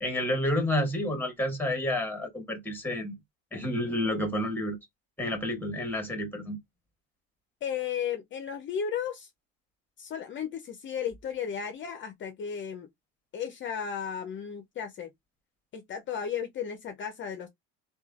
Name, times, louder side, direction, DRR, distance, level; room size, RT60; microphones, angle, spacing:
voice 1, 0.0-3.1 3.5-4.8 5.2-6.6, left 1 dB, 5° left, 1.3 m, -30 dB
voice 2, 7.6-9.3 10.0-12.9 13.3-15.1 15.7-17.5, left 7 dB, 40° left, 0.6 m, -34 dB
3.0 x 2.3 x 2.4 m
supercardioid pair, 90°, 31 cm